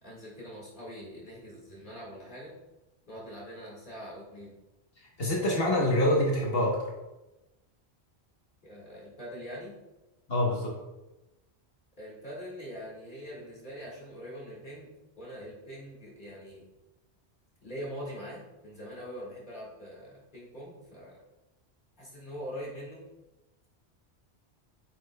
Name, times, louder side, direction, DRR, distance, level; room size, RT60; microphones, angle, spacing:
voice 1, 0.0-2.6 3.1-4.6 8.6-9.7 12.0-14.9 15.2-16.6 17.6-21.2 22.0-23.0, equal, 50° left, -6 dB, 1.9 m, -43 dB
voice 2, 5.2-6.8 10.3-10.7, left 1 dB, 65° left, -2 dB, 1.3 m, -25 dB
8.5 x 5.2 x 2.2 m, 1.0 s
omnidirectional pair, 1.1 m